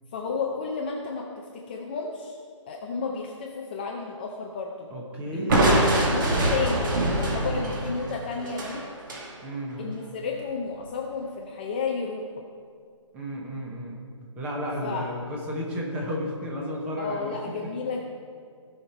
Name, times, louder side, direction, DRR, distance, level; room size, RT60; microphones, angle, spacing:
voice 1, 0.1-1.2 1.5-2.4 2.7-4.9 5.3-9.0 9.8-12.4 14.8-15.1 17.0-18.0, left 4 dB, 20° left, -1 dB, 0.5 m, -32 dB
voice 2, 4.9-6.1 7.4-7.8 9.4-9.8 13.1-14.0 14.4-17.3, equal, 10° right, -1 dB, 1.0 m, -33 dB
Crushing, 5.5-9.3, right 1 dB, 40° right, 1.9 m, -24 dB
16.0 x 5.8 x 4.4 m, 2.2 s
hypercardioid pair, 165°, 16 cm